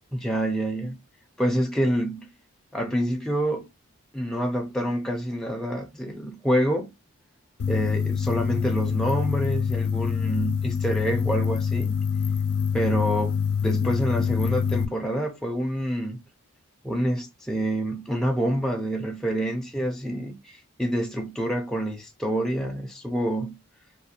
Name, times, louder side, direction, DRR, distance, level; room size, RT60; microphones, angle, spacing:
voice 1, 0.1-1.0 1.4-2.3 2.7-3.7 4.1-6.9 7.7-12.0 12.7-13.4 13.6-16.2 16.8-23.5, equal, 5° left, 0.3 m, -27 dB
sound 1, 7.6-14.8, left 6 dB, 80° left, 0.4 m, -25 dB
2.4 x 2.3 x 2.7 m
head